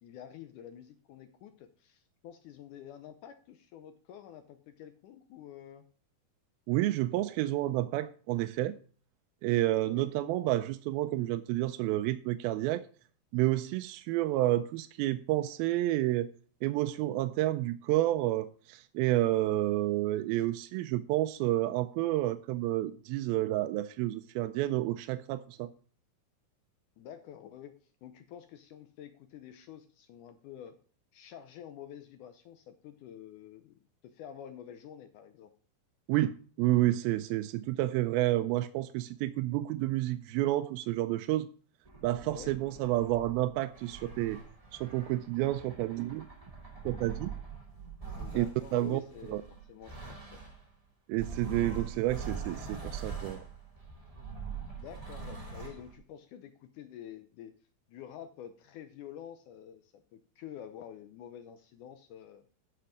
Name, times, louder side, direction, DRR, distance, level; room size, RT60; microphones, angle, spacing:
voice 1, 0.0-5.9 9.8-10.1 27.0-30.8 31.1-35.5 42.2-42.6 48.2-49.4 49.7-50.4 54.7-57.6 57.9-62.5, left 10 dB, 80° left, 1.8 m, -48 dB
voice 2, 6.7-8.8 9.4-12.9 13.3-16.3 16.6-25.7 36.1-41.5 42.0-44.4 44.7-46.3 46.8-47.3 48.4-48.5 48.7-49.0 49.3-49.4 51.1-53.4, right 15 dB, 85° right, 2.3 m, -30 dB
sound 1, 41.8-50.7 51.1-55.9, right 5 dB, 15° right, 1.6 m, -43 dB
10.0 x 6.0 x 5.0 m
omnidirectional pair, 4.3 m